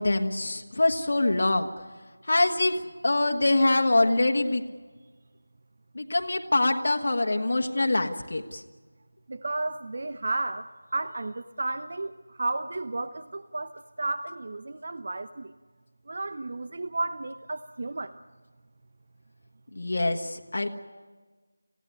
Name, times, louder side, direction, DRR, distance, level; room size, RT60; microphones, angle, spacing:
voice 1, 0.0-1.7 2.2-2.7 3.0-4.6 5.9-8.6 19.7-20.7, left 2 dB, 55° left, 3 dB, 1.6 m, -24 dB
voice 2, 9.3-10.6 10.9-12.1 12.4-13.7 14.0-15.5 16.1-18.1, right 2 dB, 45° right, 12 dB, 0.8 m, -32 dB
27.5 x 16.5 x 9.5 m, 1.4 s
figure-of-eight pair, 165°, 0 cm